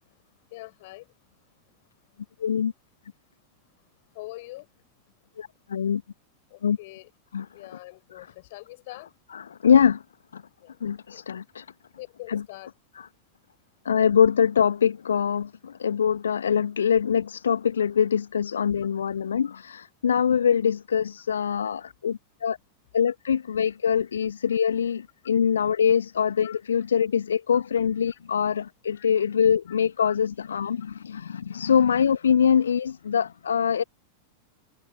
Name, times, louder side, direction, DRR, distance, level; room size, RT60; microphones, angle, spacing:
voice 1, 0.5-1.1 4.1-4.7 6.5-7.1 7.5-9.1 10.6-10.8 11.1-11.2 12.0-12.7 26.4-26.6 28.9-29.1 29.7-30.2, left 20 dB, 50° left, 5.7 m, -43 dB
voice 2, 2.4-2.7 5.4-6.0 6.6-6.8 7.3-7.5 7.7-7.8 8.1-8.3 9.3-10.0 10.3-10.4 10.8-11.6 12.3-12.4 13.0-13.1 13.8-22.6 22.9-33.8, left 7 dB, 70° left, 1.3 m, -23 dB
figure-of-eight pair, 90°, 0 cm